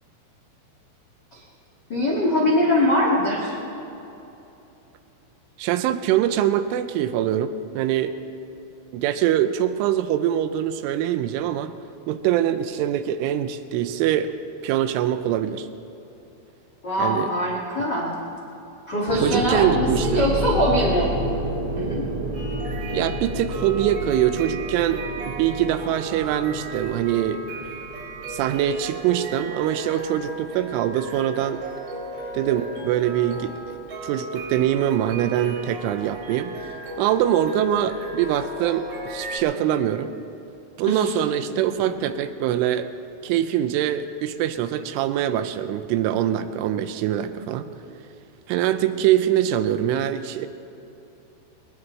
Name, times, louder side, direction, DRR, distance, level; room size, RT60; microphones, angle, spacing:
voice 1, 1.9-3.5 16.8-18.1 18.9-21.1 21.7-22.0 40.9-41.2, equal, 85° left, -3 dB, 0.9 m, -22 dB
voice 2, 5.6-7.5 7.8-8.2 8.9-11.8 12.1-14.3 14.6-15.7 17.0-17.3 17.8-17.9 19.2-20.4 22.9-27.4 28.3-31.6 32.3-33.8 34.0-36.7 37.0-40.1 40.8-42.9 43.2-47.7 48.5-50.5, right 11 dB, 80° right, 11 dB, 2.9 m, -23 dB
sound 1, 19.1-28.8, equal, 45° right, 2.9 m, -30 dB
sound 2, 22.3-39.4, right 3 dB, 65° right, 5.5 m, -36 dB
22.0 x 20.0 x 3.2 m, 2.9 s
omnidirectional pair, 5.9 m